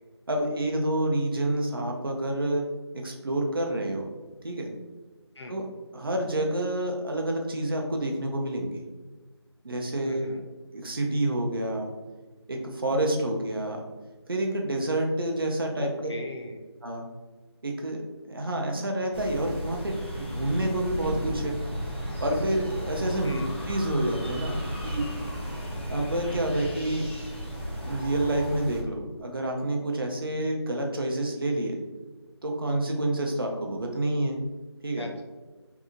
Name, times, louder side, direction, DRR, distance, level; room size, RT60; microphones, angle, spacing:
voice 1, 0.3-2.6 3.0-4.1 4.4-4.7 5.5-5.6 5.9-8.8 9.6-10.3 10.7-11.9 12.5-13.8 14.3-16.1 16.8-17.1 17.6-18.0 18.3-21.6 22.2-23.4 23.7-25.1 25.9-27.1 27.9-31.8 32.4-34.4 34.8-35.1, right 1 dB, 55° right, 1 dB, 0.5 m, -28 dB
voice 2, 10.0-10.4 15.8-16.6 23.2-23.6 34.9-35.2, left 1 dB, 70° left, 2 dB, 0.6 m, -40 dB
sound 1, 19.1-28.8, equal, 25° left, 0.4 m, -34 dB
2.7 x 2.5 x 2.4 m, 1.2 s
figure-of-eight pair, 170°, 15 cm